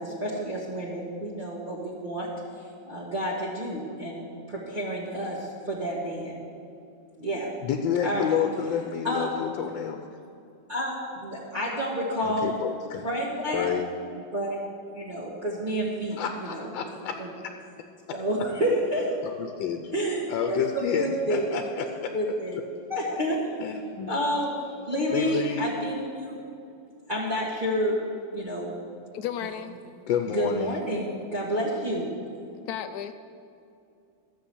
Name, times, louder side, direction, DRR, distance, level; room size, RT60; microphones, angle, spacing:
voice 1, 0.0-2.3 2.8-6.4 7.2-7.5 8.0-8.4 9.0-9.3 10.7-12.6 13.0-13.7 14.1-14.6 14.9-16.7 17.2-17.3 18.1-19.2 19.9-21.8 22.1-22.6 22.9-23.4 24.1-26.4 27.1-28.0 28.3-28.7 30.3-32.1, equal, 25° right, -9 dB, 1.8 m, -29 dB
voice 2, 7.6-10.0 12.2-13.0 13.5-13.9 16.2-17.2 19.4-19.9 20.3-22.1 23.6-24.1 25.1-25.7 30.1-30.8, left 8 dB, 90° left, 5 dB, 1.4 m, -29 dB
voice 3, 29.1-29.8 32.7-33.1, left 9 dB, 70° left, 8 dB, 0.9 m, -33 dB
13.0 x 7.0 x 7.1 m, 2.5 s
omnidirectional pair, 2.0 m